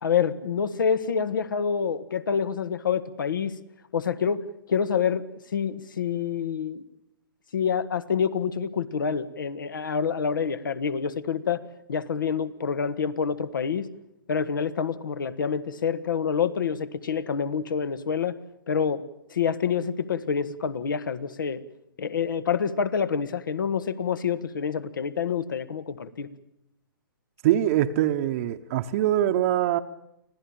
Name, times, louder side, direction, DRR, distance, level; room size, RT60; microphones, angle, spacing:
voice 1, 0.0-3.5 3.9-4.4 4.7-5.2 5.5-6.8 7.5-11.6 11.9-13.9 14.3-18.4 18.7-19.0 19.3-21.6 22.0-26.3, left 6 dB, 65° left, 14 dB, 1.6 m, -27 dB
voice 2, 27.4-29.8, right 12 dB, 40° right, 6 dB, 1.0 m, -23 dB
25.5 x 16.5 x 8.8 m, 0.83 s
figure-of-eight pair, 125°, 12 cm